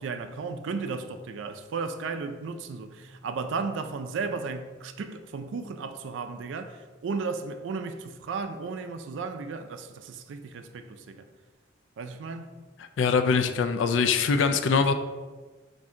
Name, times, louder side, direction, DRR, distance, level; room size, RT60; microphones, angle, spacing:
voice 1, 0.0-11.2 12.0-12.5, right 4 dB, 70° right, 0.3 m, -34 dB
voice 2, 13.0-14.9, left 5 dB, 75° left, 0.3 m, -23 dB
4.2 x 2.6 x 3.6 m
head